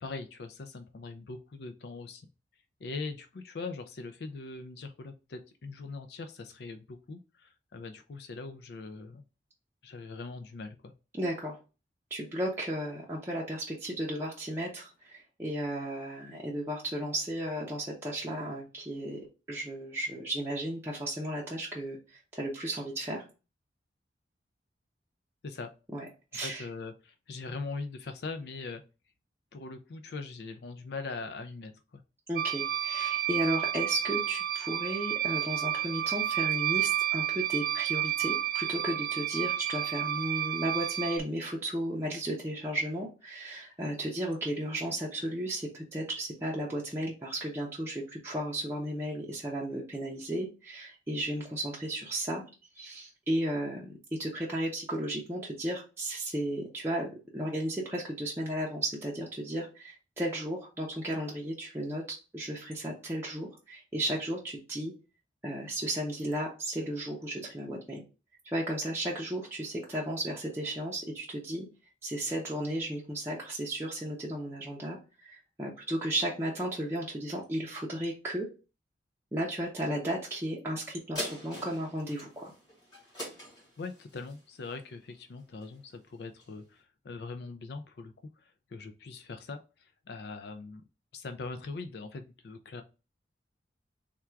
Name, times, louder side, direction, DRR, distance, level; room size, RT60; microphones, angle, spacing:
voice 1, 0.0-2.2 2.8-9.2 9.8-10.9 25.4-25.7 26.4-28.8 29.5-32.0 83.8-90.8 91.1-92.8, left 3 dB, 60° left, 8 dB, 0.4 m, -41 dB
voice 2, 11.1-11.6 12.1-19.2 19.5-23.3 25.9-26.7 32.3-52.4 52.7-53.9 54.2-64.9 65.4-68.0 68.4-71.7 72.0-78.5 79.3-82.5, right 1 dB, 15° right, -5 dB, 0.6 m, -34 dB
sound 1, 32.4-41.2, right 12 dB, 50° right, 0.3 m, -31 dB
sound 2, 81.1-85.9 86.4-86.5, left 1 dB, 20° left, 1.7 m, -43 dB
3.6 x 2.3 x 4.4 m, 0.31 s
head